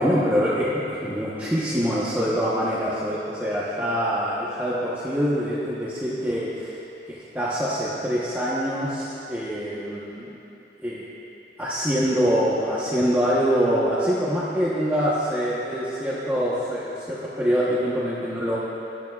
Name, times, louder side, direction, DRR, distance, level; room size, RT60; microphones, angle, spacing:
voice 1, 0.0-6.7 7.1-10.3 10.8-11.0 11.6-18.6, equal, 10° right, -9 dB, 1.0 m, -24 dB
16.5 x 11.0 x 2.4 m, 2.9 s
head